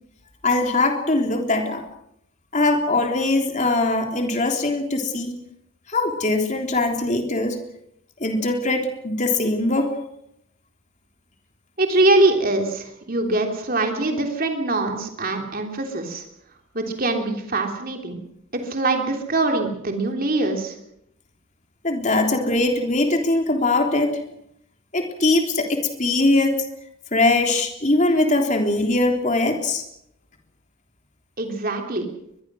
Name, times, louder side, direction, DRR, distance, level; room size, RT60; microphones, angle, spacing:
voice 1, 0.4-1.8 2.5-5.4 5.9-7.6 8.2-9.9 21.8-24.2 24.9-26.7 27.1-29.8, left 2 dB, 35° left, 3 dB, 3.4 m, -21 dB
voice 2, 11.8-16.2 16.7-18.2 18.5-20.7 31.4-32.1, right 2 dB, 40° right, 3 dB, 3.4 m, -23 dB
23.0 x 21.5 x 6.3 m, 0.76 s
head